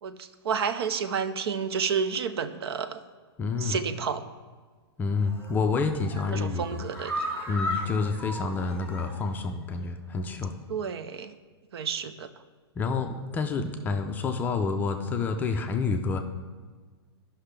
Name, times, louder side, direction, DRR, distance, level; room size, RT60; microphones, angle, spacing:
voice 1, 0.0-3.0 3.6-4.2 6.3-7.3 10.7-11.3 11.7-12.3, right 6 dB, 70° right, 11 dB, 0.6 m, -30 dB
voice 2, 3.4-3.8 5.0-6.8 7.5-10.5 12.8-16.2, left 4 dB, 15° left, 5 dB, 0.4 m, -28 dB
sound 1, 5.2-5.6 6.0-9.4 9.7-9.8 10.2-10.3, left 1 dB, 15° right, 1.7 m, -35 dB
13.0 x 5.8 x 3.3 m, 1.5 s
hypercardioid pair, 150°, 14 cm